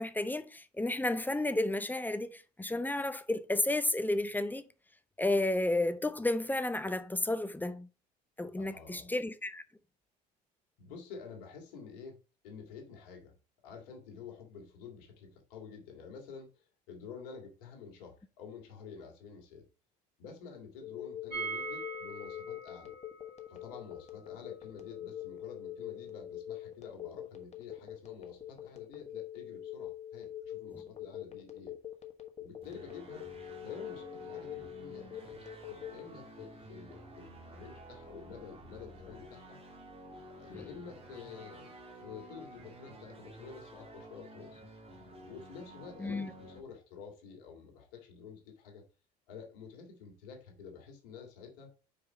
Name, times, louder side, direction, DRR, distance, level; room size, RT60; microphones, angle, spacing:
voice 1, 0.0-4.6 5.2-7.9 8.4-9.6 46.0-46.3, left 2 dB, 10° left, 0.6 m, -32 dB
voice 2, 8.5-9.1 10.8-13.4 13.6-19.7 20.2-22.9 23.5-31.7 32.4-33.2 33.6-39.6 40.4-44.6 45.2-48.8 49.3-51.7, left 6 dB, 70° left, 2.0 m, -49 dB
Telephone, 20.8-36.1, left 11 dB, 30° left, 1.2 m, -44 dB
sound 1, 21.3-27.1 27.3-27.4 27.7-27.8, right 4 dB, 90° right, 1.5 m, -44 dB
sound 2, 32.6-46.6, right 1 dB, 25° right, 1.7 m, -51 dB
4.9 x 4.8 x 4.1 m
hypercardioid pair, 60°, 21 cm